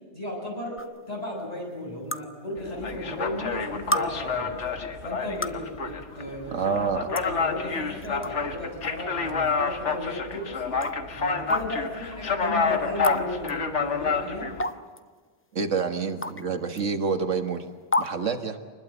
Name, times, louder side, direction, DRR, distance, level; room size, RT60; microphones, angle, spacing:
voice 1, 0.1-0.8 1.1-4.5 5.0-6.7 7.1-10.6 11.1-14.5, left 1 dB, 30° left, -2 dB, 8.1 m, -35 dB
sound 1, 0.8-0.9 2.1-2.2 3.2-3.3 3.9-4.0 5.2-5.6 6.6-6.7 7.2-7.3 8.0-8.3 8.8-8.9 9.9-10.0 10.8-11.0 11.5-11.7 13.0-13.2 13.5-13.6 14.6-15.0 16.2-16.4 16.8-16.9 17.9-18.1, left 1 dB, 15° left, 0.5 m, -27 dB
sound 2, 2.6-14.6, left 5 dB, 70° left, 1.8 m, -29 dB
voice 2, 6.5-7.1 15.5-17.7 18.0-18.6, right 5 dB, 90° right, 6 dB, 1.9 m, -27 dB
25.0 x 20.5 x 8.0 m, 1.5 s
omnidirectional pair, 1.2 m